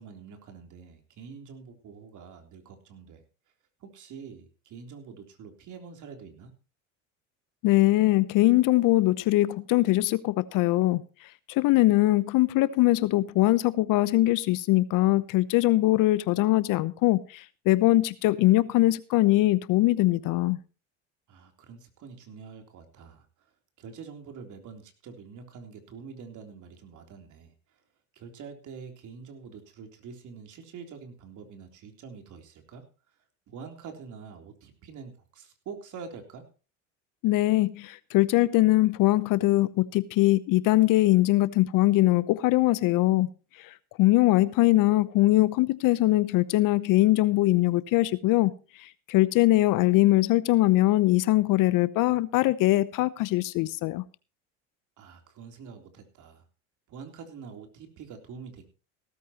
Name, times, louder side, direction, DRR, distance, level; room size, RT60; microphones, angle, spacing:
voice 1, 0.0-3.2 3.8-6.5 21.3-23.5 23.8-27.8 28.1-32.8 33.5-36.4 55.0-56.5 56.9-58.6, right 6 dB, 50° right, 3.6 m, -45 dB
voice 2, 7.6-11.0 11.5-20.6 37.2-43.3 43.6-43.7 44.0-48.5 48.8-54.0, left 17 dB, 55° left, 0.9 m, -22 dB
16.5 x 14.0 x 3.0 m
hypercardioid pair, 80°, 38 cm